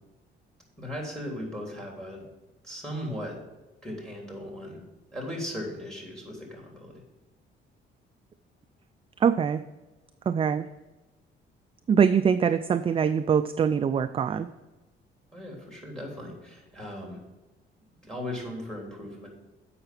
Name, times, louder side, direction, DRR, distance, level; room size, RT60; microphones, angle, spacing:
voice 1, 0.8-2.2 2.6-3.4 3.8-4.8 5.1-7.0 15.3-17.2 18.0-19.3, left 1 dB, 5° left, 0 dB, 3.2 m, -37 dB
voice 2, 9.2-9.6 10.3-10.7 11.9-14.5, right 7 dB, 30° right, 11 dB, 0.3 m, -23 dB
7.8 x 5.8 x 5.9 m, 1.1 s
cardioid pair, 90°, 20 cm